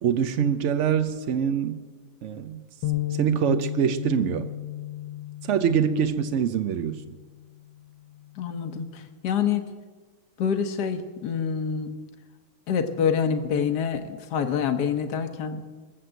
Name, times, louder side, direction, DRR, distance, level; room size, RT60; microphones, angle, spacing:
voice 1, 0.0-1.8 2.2-2.6 3.1-4.5 5.4-7.2, right 8 dB, 90° right, 10 dB, 0.6 m, -24 dB
sound 1, 2.8-7.1 7.6-7.8 8.6-9.1, left 13 dB, 75° left, 1.6 m, -33 dB
voice 2, 8.4-9.6 10.4-12.0 12.7-15.6, left 7 dB, 60° left, 8 dB, 1.6 m, -26 dB
22.5 x 7.5 x 7.9 m, 1.4 s
omnidirectional pair, 2.1 m